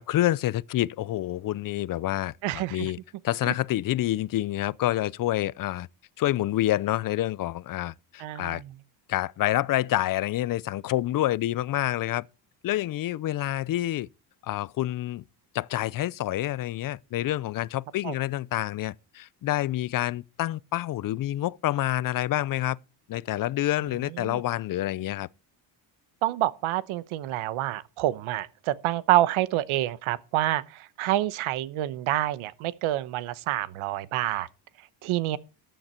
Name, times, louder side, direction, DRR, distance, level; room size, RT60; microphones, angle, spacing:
voice 1, 0.0-3.0 3.2-5.9 6.2-8.6 9.1-12.3 12.6-14.1 14.4-15.2 15.5-22.8 23.1-25.3, left 14 dB, 45° left, 0.5 m, -28 dB
voice 2, 2.4-2.9 8.2-8.7 18.0-18.1 24.2-24.4 26.2-34.5 35.0-35.4, right 15 dB, 80° right, 1.0 m, -27 dB
13.5 x 9.1 x 4.4 m
cardioid pair, 120°, 48 cm